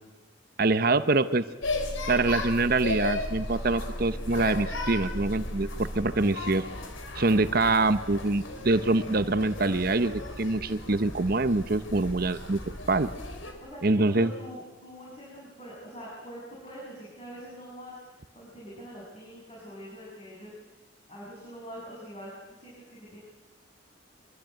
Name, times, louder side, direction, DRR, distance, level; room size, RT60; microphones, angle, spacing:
voice 1, 0.6-1.4 2.1-6.6 7.2-12.6 12.9-13.1 13.8-14.3, right 2 dB, 50° right, 12 dB, 0.9 m, -25 dB
sound 1, 1.6-13.5, left 1 dB, 85° left, 4.3 m, -35 dB
voice 2, 13.6-20.5 21.1-23.2, equal, 30° left, -6 dB, 7.7 m, -44 dB
24.5 x 22.5 x 9.2 m, 1.1 s
head